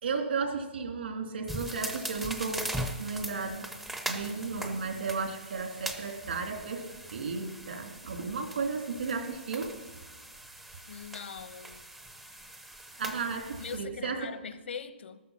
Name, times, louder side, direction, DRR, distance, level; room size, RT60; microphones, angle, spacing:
voice 1, 0.0-2.7 3.0-3.7 4.1-6.9 7.1-9.7 13.0-14.2, right 4 dB, 65° right, 3.0 m, -34 dB
sound 1, 1.5-13.8, right 1 dB, 5° right, 0.6 m, -41 dB
voice 2, 10.9-11.8 13.6-15.2, left 6 dB, 70° left, 1.0 m, -41 dB
13.5 x 13.0 x 5.8 m
hypercardioid pair, 170°, 6 cm